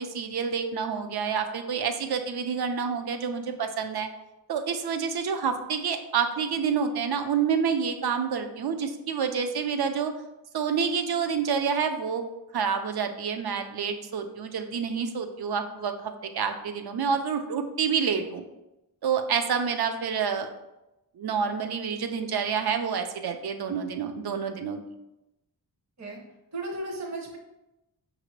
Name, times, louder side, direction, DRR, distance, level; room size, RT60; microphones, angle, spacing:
voice 1, 0.0-4.1 4.5-10.1 10.5-12.2 12.5-18.4 19.0-20.5 21.2-24.8, right 6 dB, 65° right, 7 dB, 0.5 m, -28 dB
voice 2, 26.5-27.4, right 2 dB, 40° right, -1 dB, 0.9 m, -35 dB
5.8 x 2.7 x 3.1 m, 0.95 s
wide cardioid pair, 105°, 41 cm